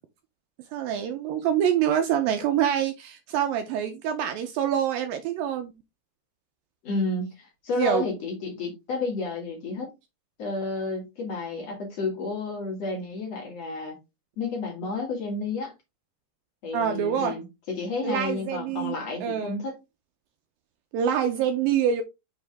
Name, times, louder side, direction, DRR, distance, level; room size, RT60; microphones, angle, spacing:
voice 1, 0.7-5.7 7.8-8.0 16.7-17.4 18.0-19.0 19.2-19.6 20.9-22.0, right 9 dB, 80° right, 2.2 m, -25 dB
voice 2, 6.8-9.9 10.4-14.0 14.4-15.7 16.6-19.8, left 3 dB, 45° left, 2.7 m, -31 dB
6.4 x 5.0 x 3.4 m
omnidirectional pair, 4.6 m